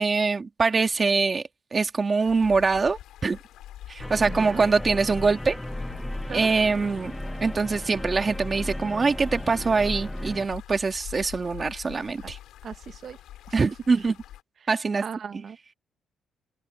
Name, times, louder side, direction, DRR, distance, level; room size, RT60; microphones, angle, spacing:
voice 1, 0.0-1.4 1.7-3.4 3.9-5.6 6.3-7.1 7.4-12.4 13.5-14.2 14.7-15.0, right 4 dB, 35° right, 2.4 m, -24 dB
sound 1, 2.2-14.4, left 12 dB, 85° left, 7.1 m, -46 dB
sound 2, 4.0-10.5, left 1 dB, 10° left, 1.1 m, -35 dB
voice 2, 4.3-4.6 6.3-6.5 12.6-13.2 15.0-15.6, right 7 dB, 50° right, 1.4 m, -37 dB
open air
cardioid pair, 90°, 0 cm